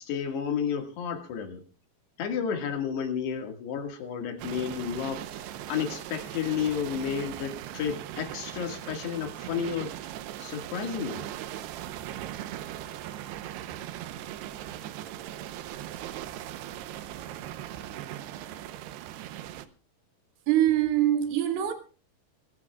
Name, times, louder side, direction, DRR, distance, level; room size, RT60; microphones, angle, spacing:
voice 1, 0.0-1.6 2.2-5.4 5.7-9.9 10.4-11.3, left 7 dB, 70° left, 4.0 m, -31 dB
sound 1, 4.4-19.7, right 12 dB, 80° right, 2.8 m, -39 dB
voice 2, 20.5-21.7, right 12 dB, 60° right, 3.4 m, -23 dB
25.5 x 15.0 x 2.4 m
omnidirectional pair, 5.0 m